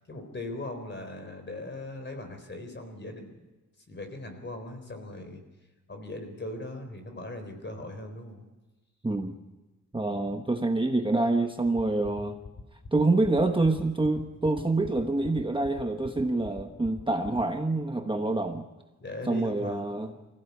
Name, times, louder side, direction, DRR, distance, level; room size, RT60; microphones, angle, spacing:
voice 1, 0.1-3.4 3.9-5.4 5.9-8.4 10.1-10.3 19.0-19.8, left 2 dB, 35° left, 6 dB, 4.1 m, -39 dB
voice 2, 9.9-12.4 12.9-18.7 19.3-20.1, right 2 dB, 15° right, 4 dB, 1.1 m, -26 dB
sound 1, 11.7-17.6, left 4 dB, 55° left, 2.7 m, -42 dB
25.0 x 16.0 x 8.4 m, 1.2 s
wide cardioid pair, 145°, 31 cm